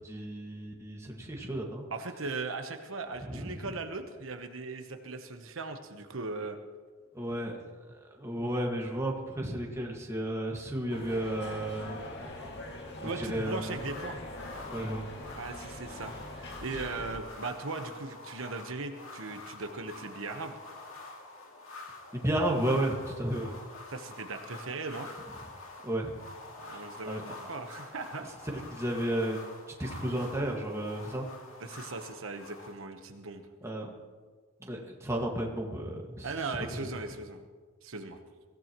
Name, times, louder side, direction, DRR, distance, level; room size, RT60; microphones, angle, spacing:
voice 1, 0.0-1.9 3.2-3.7 7.1-7.5 7.9-12.0 13.0-13.8 14.7-15.1 22.1-23.6 25.8-26.1 26.7-27.3 28.5-29.4 29.8-31.3 33.6-33.9 34.6-36.4, right 1 dB, 15° right, -1 dB, 1.8 m, -33 dB
voice 2, 1.9-6.6 13.0-14.2 15.4-20.6 23.9-25.1 26.6-28.3 31.6-33.5 36.2-37.4 37.8-38.2, right 3 dB, 70° right, 6 dB, 1.1 m, -38 dB
sound 1, 10.9-17.2, left 1 dB, 55° left, 2.1 m, -42 dB
sound 2, 13.4-32.7, left 2 dB, 80° left, 2.4 m, -47 dB
23.0 x 16.0 x 3.1 m, 1.5 s
head